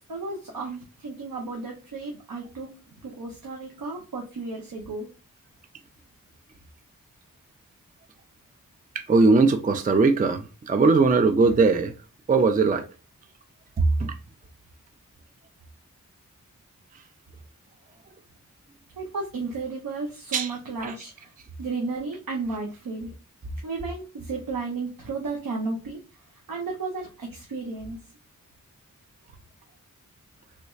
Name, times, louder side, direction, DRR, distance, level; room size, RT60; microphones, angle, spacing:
voice 1, 0.1-2.7 3.0-5.1 19.0-21.3 21.6-23.1 23.6-26.0 26.5-28.0, right 3 dB, 80° right, 0.7 m, -33 dB
voice 2, 9.0-11.9 12.3-12.8 14.0-14.1 20.3-20.5 20.8-20.9, right 4 dB, 25° right, 0.4 m, -20 dB
3.2 x 3.0 x 2.3 m
cardioid pair, 50°, 34 cm